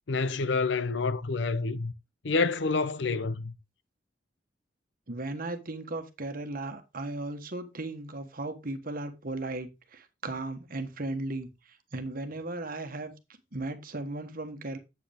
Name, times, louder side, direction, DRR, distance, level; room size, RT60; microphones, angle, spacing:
voice 1, 0.1-1.9 2.2-3.5, left 4 dB, 75° left, 0.7 m, -28 dB
voice 2, 5.1-13.1 13.5-14.8, right 2 dB, 50° right, 1.3 m, -36 dB
8.3 x 7.9 x 3.5 m
head